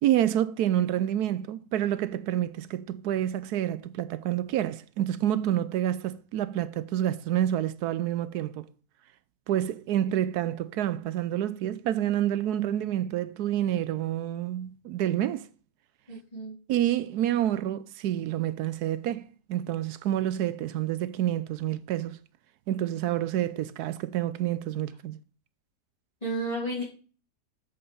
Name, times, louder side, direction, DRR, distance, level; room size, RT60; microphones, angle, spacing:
voice 1, 0.0-8.7 9.5-15.5 16.7-22.2 22.7-25.2, right 12 dB, 80° right, 1.1 m, -28 dB
voice 2, 16.1-16.6 26.2-26.8, right 1 dB, 25° left, 2.9 m, -32 dB
7.7 x 5.5 x 6.7 m
omnidirectional pair, 1.7 m